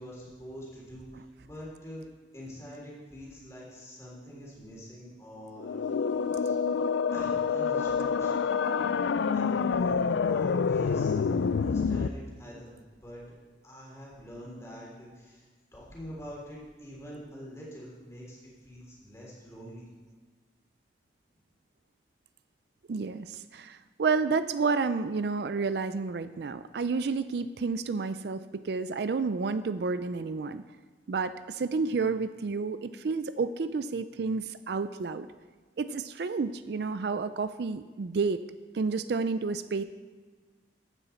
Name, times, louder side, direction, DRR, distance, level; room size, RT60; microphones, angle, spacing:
voice 1, 0.0-2.0 2.3-5.8 6.3-6.6 7.1-8.4 9.3-13.2 13.6-15.4 15.7-19.9, equal, 15° left, -5 dB, 3.5 m, -45 dB
sound 1, 5.6-12.1, left 5 dB, 80° left, 0.4 m, -27 dB
voice 2, 22.9-30.6 31.1-35.3 35.8-38.4 38.7-39.8, right 4 dB, 60° right, 12 dB, 0.4 m, -30 dB
15.0 x 9.7 x 4.4 m, 1.4 s
head